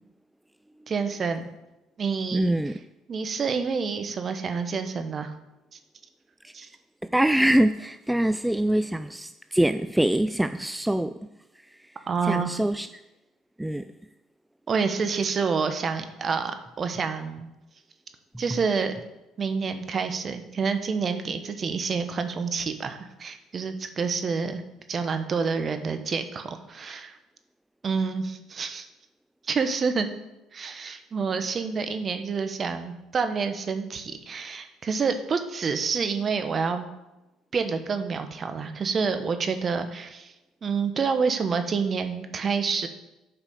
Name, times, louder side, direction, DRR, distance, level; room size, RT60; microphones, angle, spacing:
voice 1, 0.9-1.4 2.0-2.5 3.1-5.3 6.5-6.7 12.1-12.5 14.7-17.5 18.4-18.9 19.4-24.6 24.9-27.2 27.8-28.9 29.5-30.1 30.5-36.8 37.5-40.3 40.6-42.9, right 5 dB, 40° right, 1.1 m, -28 dB
voice 2, 2.3-2.8 6.4-6.7 7.0-11.3 12.2-12.9 13.6-13.9, right 1 dB, 5° right, 0.3 m, -24 dB
8.5 x 4.9 x 6.7 m
supercardioid pair, 75°, 0 cm